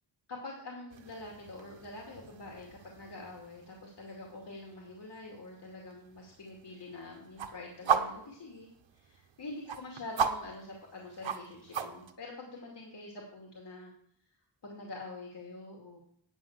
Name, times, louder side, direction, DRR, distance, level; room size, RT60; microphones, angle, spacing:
voice 1, 0.3-13.9 14.6-16.0, left 2 dB, 65° left, -1 dB, 2.4 m, -46 dB
sound 1, 0.9-12.1, right 7 dB, 85° right, 1.1 m, -38 dB
9.9 x 5.9 x 7.2 m, 0.67 s
cardioid pair, 80°, 45 cm